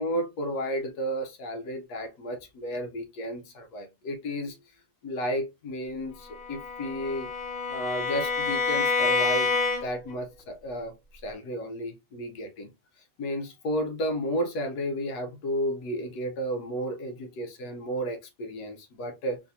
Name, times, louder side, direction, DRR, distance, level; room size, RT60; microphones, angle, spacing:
voice 1, 0.0-4.6 5.0-7.3 7.7-9.5 9.8-10.9 11.2-12.7 13.2-19.4, equal, 65° left, 1.2 m, -32 dB
Bowed string instrument, 6.3-10.1, left 4 dB, 40° left, 1.3 m, -28 dB
3.7 x 2.6 x 2.6 m
omnidirectional pair, 1.9 m